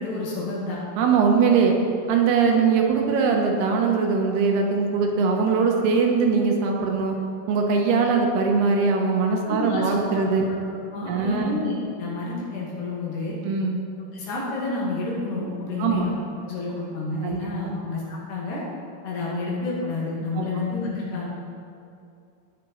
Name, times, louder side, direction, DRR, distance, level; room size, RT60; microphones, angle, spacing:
voice 1, 0.0-0.8 9.5-9.9 10.5-10.6 10.9-13.4 14.1-16.2 16.4-18.6 19.0-21.3, left 3 dB, 85° left, -6 dB, 4.8 m, -29 dB
voice 2, 1.0-1.8 2.1-7.2 7.5-10.5 11.1-11.6 13.4-13.8 15.8-16.1 17.2-17.8 20.3-20.6, right 5 dB, 85° right, 1 dB, 3.2 m, -21 dB
18.0 x 6.9 x 4.6 m, 2.5 s
omnidirectional pair, 4.5 m